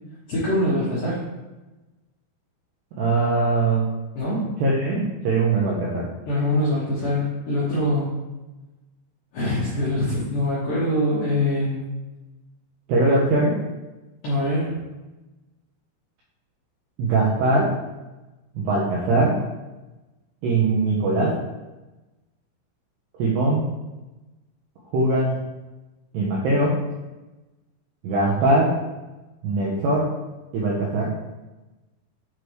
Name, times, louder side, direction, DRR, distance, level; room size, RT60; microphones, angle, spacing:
voice 1, 0.3-1.2 4.2-4.5 6.3-8.1 9.3-11.8 14.2-14.8, left 1 dB, 75° left, -9 dB, 2.0 m, -23 dB
voice 2, 3.0-3.8 4.6-6.1 12.9-13.6 17.0-17.7 18.6-19.3 20.4-21.3 23.2-23.7 24.9-25.4 26.1-26.7 28.0-28.7 29.4-30.1 30.5-31.1, right 2 dB, 80° right, -5 dB, 2.4 m, -21 dB
7.9 x 3.2 x 4.6 m, 1.1 s
omnidirectional pair, 5.9 m